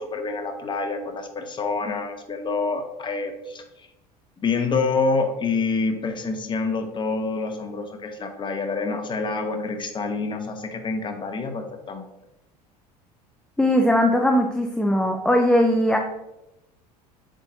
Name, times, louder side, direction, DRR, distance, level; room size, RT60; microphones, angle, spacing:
voice 1, 0.0-3.9 4.4-12.1, left 4 dB, 20° left, 5 dB, 1.1 m, -27 dB
voice 2, 13.6-16.0, left 1 dB, 5° left, 2 dB, 0.6 m, -19 dB
8.0 x 3.8 x 4.0 m, 0.91 s
figure-of-eight pair, 70°, 21 cm